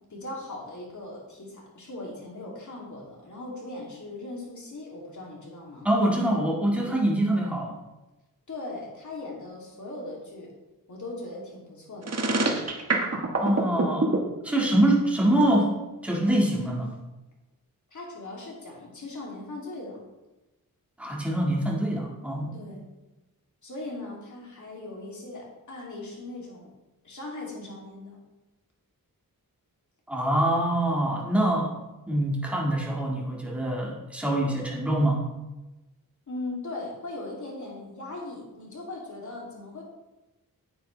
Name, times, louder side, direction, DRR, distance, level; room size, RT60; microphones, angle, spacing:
voice 1, 0.1-5.9 8.5-10.6 10.9-12.2 17.9-20.0 22.5-22.8 23.6-26.7 27.0-28.2 36.3-39.8, left 2 dB, 55° left, -3 dB, 2.9 m, -39 dB
voice 2, 5.8-7.8 13.4-15.7 16.0-16.9 21.0-22.5 30.1-31.7 32.1-35.2, right 1 dB, 5° right, -3 dB, 1.9 m, -24 dB
sound 1, 12.0-14.2, right 3 dB, 45° right, 1.4 m, -24 dB
9.3 x 9.1 x 3.4 m, 1.0 s
wide cardioid pair, 95°, 36 cm